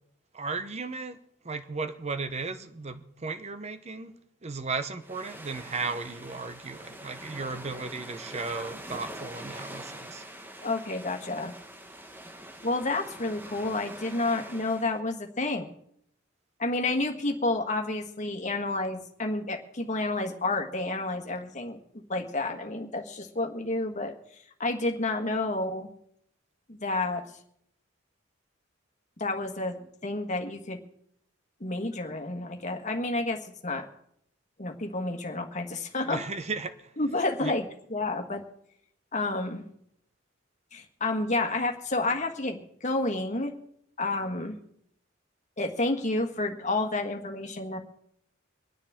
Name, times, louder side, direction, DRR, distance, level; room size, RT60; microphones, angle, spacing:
voice 1, 0.3-1.2 1.4-10.2 36.0-37.6, right 4 dB, 35° right, 0.9 m, -35 dB
sound 1, 5.0-15.0, right 1 dB, 10° right, 1.1 m, -44 dB
voice 2, 10.6-11.6 12.6-15.7 16.6-21.8 22.1-24.1 24.6-25.9 26.7-27.2 29.2-29.8 30.0-30.8 31.6-33.9 34.6-36.2 37.0-38.4 39.1-39.6 40.7-43.5 44.0-44.6 45.6-47.8, left 2 dB, 40° left, 1.7 m, -30 dB
25.0 x 9.9 x 3.7 m
head